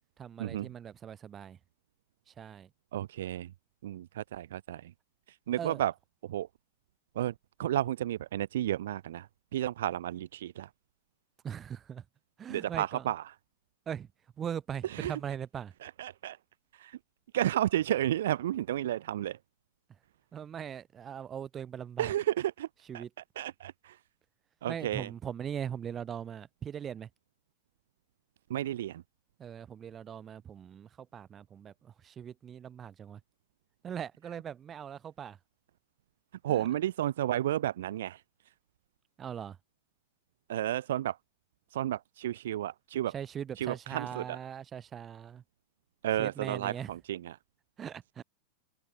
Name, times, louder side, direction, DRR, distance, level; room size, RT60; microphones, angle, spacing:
voice 1, 0.2-1.6 2.3-2.7 5.6-5.8 11.4-12.0 12.4-13.1 13.9-14.1 14.4-15.7 20.3-22.2 22.8-23.1 24.7-27.1 29.4-33.2 33.8-35.4 36.5-36.7 39.2-39.6 43.1-45.4 46.1-47.0 47.8-48.2, right 8 dB, 25° right, 2.2 m, -40 dB
voice 2, 2.9-3.5 3.8-4.8 5.5-5.9 6.3-6.5 7.2-7.3 7.6-9.3 9.5-10.7 12.5-13.2 15.0-15.1 15.8-16.4 16.8-16.9 17.3-19.4 22.0-22.7 22.9-23.0 23.4-23.9 24.6-25.1 28.5-29.0 36.4-38.2 40.5-41.1 41.7-43.1 43.6-44.2 46.0-46.7 47.1-47.2, right 12 dB, 60° right, 0.3 m, -31 dB
open air
figure-of-eight pair, 90°, 0 cm